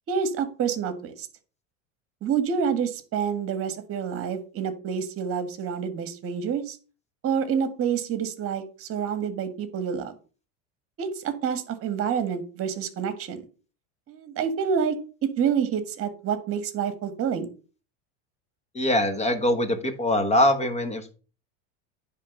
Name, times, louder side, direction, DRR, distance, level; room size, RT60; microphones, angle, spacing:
voice 1, 0.1-1.3 2.2-6.8 7.2-10.1 11.0-13.4 14.1-17.5, right 7 dB, 35° right, 11 dB, 1.6 m, -28 dB
voice 2, 18.7-21.1, left 1 dB, 15° left, 8 dB, 1.3 m, -23 dB
9.9 x 3.6 x 6.4 m, 0.36 s
supercardioid pair, 140°, 37 cm